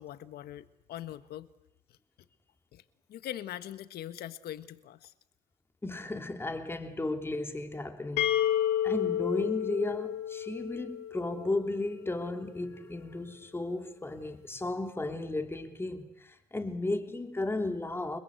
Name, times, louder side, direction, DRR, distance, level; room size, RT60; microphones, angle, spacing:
voice 1, 0.0-1.5 2.7-2.8 3.1-5.1, left 12 dB, 70° left, 1.5 m, -42 dB
voice 2, 5.8-8.3 8.8-18.2, left 2 dB, 15° left, 3.2 m, -34 dB
sound 1, 8.2-11.9, left 11 dB, 90° left, 1.7 m, -31 dB
29.5 x 22.0 x 8.2 m
cardioid pair, 110°, 17 cm